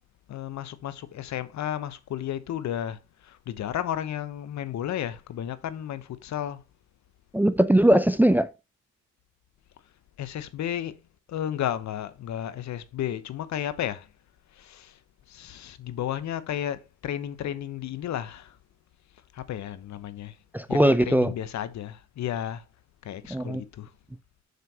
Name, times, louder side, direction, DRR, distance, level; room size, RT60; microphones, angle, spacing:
voice 1, 0.3-3.0 3.3-6.6 10.2-10.9 11.3-14.1 14.6-14.9 15.3-18.5 19.3-20.3 20.7-22.6 23.0-23.9, left 11 dB, 65° left, 0.9 m, -33 dB
voice 2, 7.3-8.5 20.5-21.3 23.3-23.6, right 1 dB, 5° right, 0.5 m, -20 dB
6.9 x 6.6 x 2.9 m
cardioid pair, 90°, 30 cm